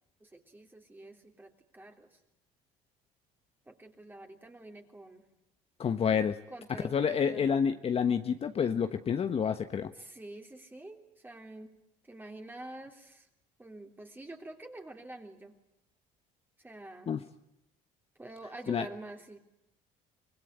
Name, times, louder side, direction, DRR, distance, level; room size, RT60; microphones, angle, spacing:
voice 1, 0.2-2.1 3.7-5.3 6.5-7.6 9.9-11.7 12.0-13.3 13.6-15.5 16.6-17.1 18.2-19.4, right 2 dB, 10° right, 3 dB, 3.3 m, -47 dB
voice 2, 5.8-6.4 6.9-9.9 17.1-17.2 18.7-18.9, left 7 dB, 40° left, 8 dB, 1.2 m, -28 dB
25.0 x 20.0 x 9.9 m, 0.83 s
supercardioid pair, 100°, 16 cm